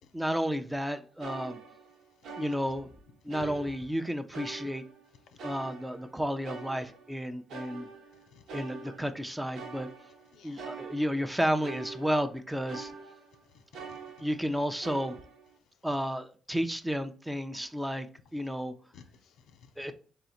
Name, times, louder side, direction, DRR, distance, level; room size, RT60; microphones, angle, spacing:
voice 1, 0.1-1.6 2.4-2.9 3.2-4.8 5.4-7.9 8.5-9.9 10.4-12.9 14.2-15.2 15.8-18.7 19.8-19.9, equal, 5° right, 0.5 m, -32 dB
sound 1, 1.2-3.0 3.3-4.0 4.3-7.2 7.5-13.4 13.7-14.5 14.8-15.5, right 4 dB, 80° right, 0.9 m, -45 dB
voice 2, 5.3-5.6 8.3-8.4 10.3-10.6 13.4-14.3 18.9-19.7, left 6 dB, 80° left, 0.5 m, -57 dB
3.8 x 2.4 x 4.2 m
cardioid pair, 90°, 0 cm